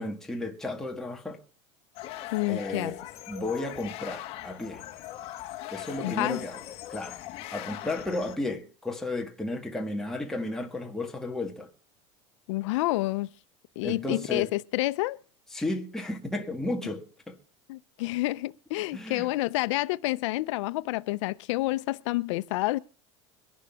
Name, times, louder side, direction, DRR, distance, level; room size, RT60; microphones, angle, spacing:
voice 1, 0.0-1.4 2.5-3.0 3.3-4.8 5.7-6.6 6.9-7.2 7.5-11.7 13.8-14.5 15.5-17.4 18.9-19.3, left 2 dB, 5° left, 1.6 m, -33 dB
sound 1, 2.0-8.4, left 14 dB, 40° left, 1.8 m, -41 dB
voice 2, 2.3-2.9 6.0-6.5 12.5-13.3 13.8-15.2 17.7-22.8, left 19 dB, 80° left, 0.6 m, -29 dB
22.5 x 11.5 x 3.5 m
cardioid pair, 175°, 15 cm